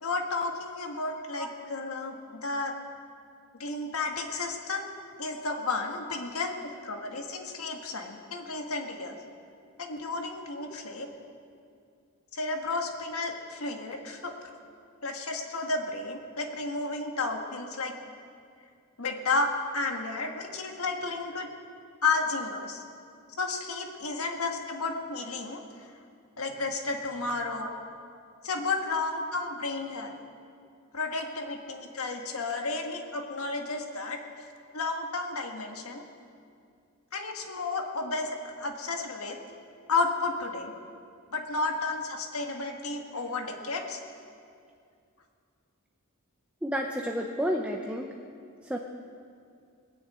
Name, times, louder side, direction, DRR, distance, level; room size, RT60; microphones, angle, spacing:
voice 1, 0.0-2.7 3.6-4.9 5.2-9.1 9.8-11.1 12.3-14.3 15.0-17.9 19.0-21.5 22.0-22.8 23.4-25.6 26.4-27.8 28.4-30.2 30.9-34.2 34.7-36.1 37.1-39.4 39.9-40.7 41.3-44.0, left 3 dB, 80° left, 3 dB, 1.7 m, -32 dB
voice 2, 46.6-48.1 48.7-48.8, equal, 5° right, 1 dB, 0.7 m, -31 dB
20.5 x 7.2 x 8.6 m, 2.3 s
head